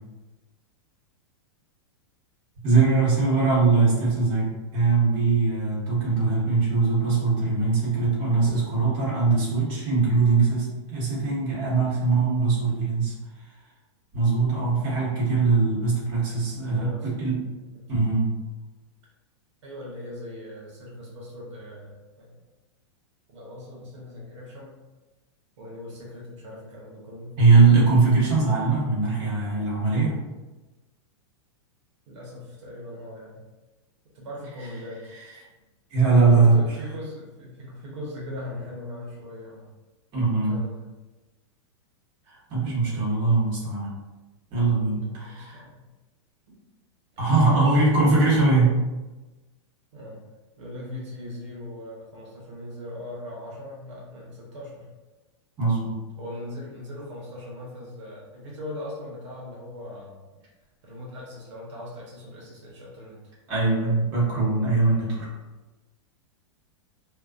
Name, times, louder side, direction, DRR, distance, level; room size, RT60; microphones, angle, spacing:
voice 1, 2.6-13.1 14.1-17.4 17.9-18.3 27.4-30.1 35.9-36.6 40.1-40.6 42.3-43.9 44.5-45.6 47.2-48.8 55.6-56.0 63.5-65.3, right 4 dB, 30° right, -8 dB, 1.1 m, -21 dB
voice 2, 16.7-18.0 19.6-22.4 23.3-24.8 25.6-27.4 32.1-33.4 34.1-35.0 36.3-39.7 40.3-40.8 42.8-43.0 45.0-45.8 47.1-47.2 47.5-48.2 49.9-50.2 50.6-54.9 56.2-60.2 60.8-63.2, left 1 dB, 75° right, -4 dB, 0.9 m, -40 dB
2.4 x 2.3 x 2.3 m, 1.1 s
supercardioid pair, 145°, 15 cm